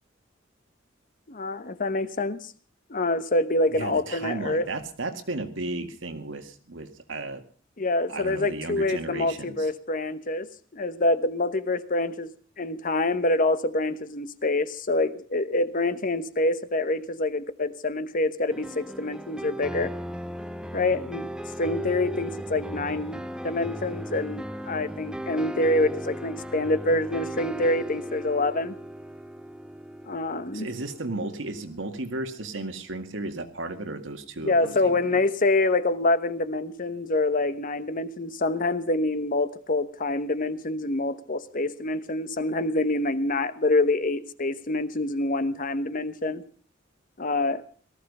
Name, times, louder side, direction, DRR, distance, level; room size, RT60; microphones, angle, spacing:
voice 1, 1.3-2.5 2.9-4.7 7.8-10.5 10.7-19.9 20.7-21.3 21.6-28.8 30.1-30.7 34.4-46.4 47.2-47.6, left 2 dB, 45° left, 13 dB, 1.1 m, -26 dB
voice 2, 3.7-7.4 8.1-9.7 30.5-35.2, right 2 dB, 80° right, 7 dB, 2.0 m, -34 dB
sound 1, 18.5-32.4, right 1 dB, 5° right, 0.7 m, -37 dB
18.5 x 14.5 x 5.4 m, 0.43 s
head